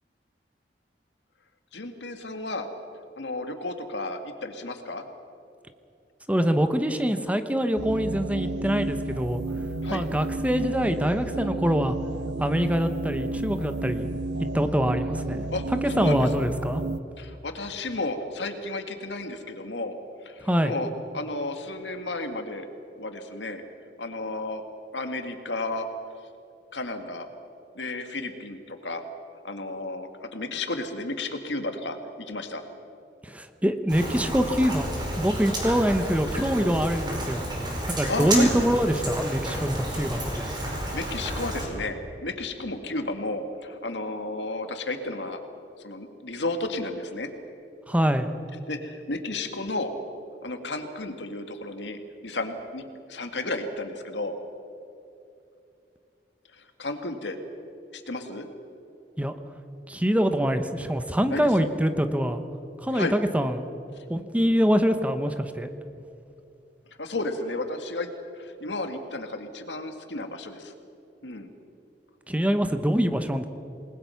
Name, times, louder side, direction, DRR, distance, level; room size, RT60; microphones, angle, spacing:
voice 1, 1.7-2.7 3.2-5.0 9.8-10.0 15.5-15.6 15.9-16.3 17.2-20.0 20.2-22.7 23.0-23.6 24.0-24.6 24.9-25.9 26.7-27.3 27.8-29.0 29.4-32.6 38.1-38.5 40.9-45.4 45.8-47.3 48.7-49.9 50.4-54.4 56.5-57.4 57.9-58.5 61.3-61.5 62.9-63.2 64.0-64.1 67.0-70.7 71.2-71.5, left 2 dB, 80° left, 6 dB, 2.1 m, -33 dB
voice 2, 6.3-9.4 9.9-12.0 12.4-14.1 14.5-15.5 15.8-16.8 20.4-20.7 33.2-34.9 35.2-37.4 37.9-40.5 47.9-48.3 59.2-59.3 59.9-62.4 62.8-63.6 64.1-65.7 72.3-73.5, equal, 10° right, 8 dB, 1.0 m, -24 dB
sound 1, 7.8-17.0, right 2 dB, 70° right, 0.7 m, -32 dB
Rain, 33.9-41.7, right 1 dB, 25° right, 4.8 m, -31 dB
27.5 x 20.5 x 5.9 m, 2.7 s
head